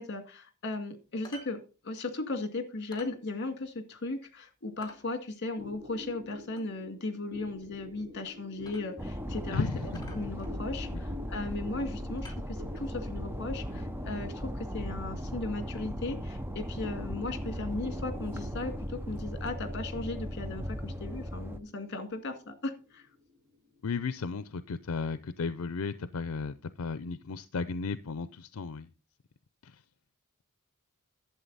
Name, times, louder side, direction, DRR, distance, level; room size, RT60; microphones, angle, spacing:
voice 1, 0.0-1.6 1.8-9.7 10.1-23.1, left 2 dB, 55° left, 2.0 m, -37 dB
sound 1, 1.2-1.6 1.8-1.9 2.3-2.4 2.9-3.2 3.6-3.7 4.2-4.3 4.8-5.1 6.6-6.7 8.2-8.4 8.7-9.2 9.5-9.6 9.9-10.9 11.6-11.8 12.2-13.0 13.9-14.0, left 2 dB, 20° left, 2.1 m, -51 dB
sound 2, 5.5-24.3, left 2 dB, 40° right, 4.8 m, -49 dB
sound 3, 9.0-21.6, equal, 10° right, 0.7 m, -37 dB
voice 2, 9.5-10.1 23.8-28.9 29.6-29.8, left 4 dB, 80° left, 0.5 m, -34 dB
11.5 x 7.7 x 4.0 m
head